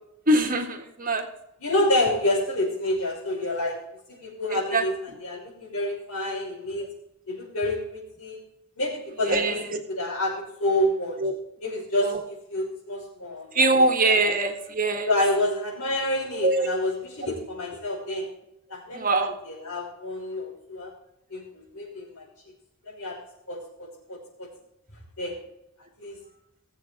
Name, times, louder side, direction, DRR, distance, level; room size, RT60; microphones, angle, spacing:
voice 1, 0.3-1.3 4.5-4.8 9.2-9.8 11.2-11.3 12.0-12.2 13.5-15.1 16.4-16.7 18.9-19.4, right 2 dB, 40° right, 5 dB, 1.6 m, -23 dB
voice 2, 1.6-3.8 4.1-4.9 5.2-6.9 7.3-8.4 8.8-9.6 9.9-11.2 11.6-12.1 12.5-13.7 14.2-14.3 15.1-18.3 18.7-19.2 19.4-20.9 21.3-22.2 22.8-23.2 23.5-24.5 25.2-25.3 26.0-26.2, left 1 dB, 85° left, -4 dB, 5.5 m, -28 dB
19.5 x 7.9 x 3.5 m, 0.84 s
head